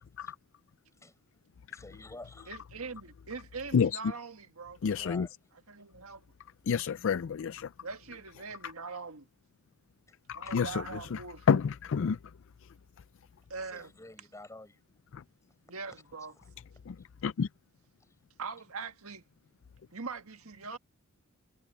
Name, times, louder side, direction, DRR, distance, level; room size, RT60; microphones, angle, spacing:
voice 1, 1.7-2.5 5.0-5.3 10.1-10.2 10.5-10.6 13.6-14.8, left 2 dB, 15° left, 5.3 m, -49 dB
voice 2, 2.5-4.8 5.7-6.2 7.8-9.3 10.4-11.5 13.5-13.9 15.7-16.3 18.4-19.2 19.9-20.8, right 4 dB, 80° right, 1.7 m, -42 dB
voice 3, 4.8-5.3 6.7-7.7 8.6-8.7 10.3-12.2 12.6-12.7 15.1-15.2 16.9-17.0 17.2-17.5, left 6 dB, 60° left, 0.4 m, -29 dB
head